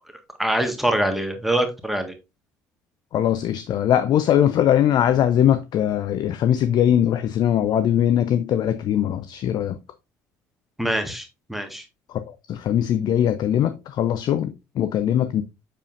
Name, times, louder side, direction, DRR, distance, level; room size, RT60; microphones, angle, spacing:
voice 1, 0.4-2.1 10.8-11.8, right 1 dB, ahead, 1.7 m, -24 dB
voice 2, 3.1-9.8 12.1-12.2 12.5-15.4, left 10 dB, 50° left, 0.6 m, -21 dB
7.3 x 6.9 x 2.6 m
figure-of-eight pair, 55°, 9 cm